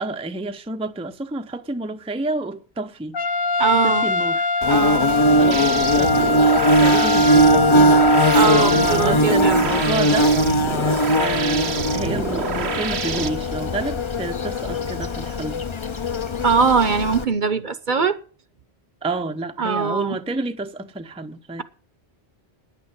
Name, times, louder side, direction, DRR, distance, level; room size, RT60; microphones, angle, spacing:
voice 1, 0.0-3.2 3.8-4.5 5.4-6.5 6.8-10.8 11.2-15.6 19.0-21.6, right 2 dB, 5° right, 0.6 m, -29 dB
Trumpet, 3.1-9.2, left 3 dB, 55° left, 0.9 m, -23 dB
voice 2, 3.6-4.1 4.7-5.1 8.3-9.7 16.4-18.2 19.6-20.2, right 5 dB, 50° right, 1.0 m, -21 dB
Bird / Buzz, 4.6-17.2, equal, 30° left, 0.7 m, -20 dB
sound 1, 5.5-13.3, right 7 dB, 75° right, 1.2 m, -28 dB
10.5 x 8.4 x 9.5 m
omnidirectional pair, 1.1 m